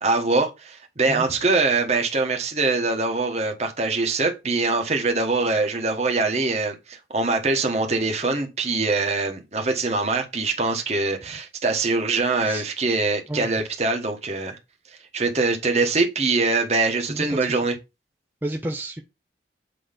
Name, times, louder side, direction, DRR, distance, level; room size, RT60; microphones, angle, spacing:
voice 1, 0.0-14.6 15.1-17.7, right 3 dB, 40° right, 1.3 m, -23 dB
voice 2, 17.1-17.6 18.4-19.0, right 1 dB, 10° right, 0.6 m, -31 dB
7.8 x 3.1 x 5.2 m
head